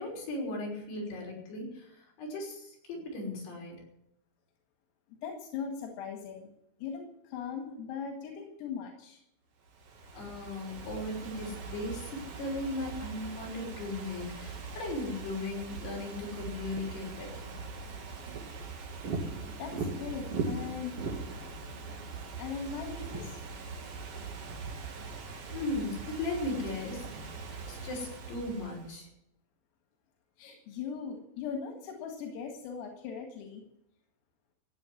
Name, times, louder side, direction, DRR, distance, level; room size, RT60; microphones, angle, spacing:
voice 1, 0.0-3.8 10.1-17.6 25.5-27.1 27.7-29.1, left 2 dB, 55° left, -1 dB, 7.6 m, -37 dB
voice 2, 5.2-6.5 6.8-9.2 19.6-21.0 22.4-23.4 30.4-33.6, left 6 dB, 90° left, 3 dB, 4.6 m, -39 dB
Ocean / Fireworks, 9.7-29.0, right 4 dB, 55° right, 1.6 m, -41 dB
16.0 x 9.4 x 9.8 m, 0.76 s
omnidirectional pair, 5.8 m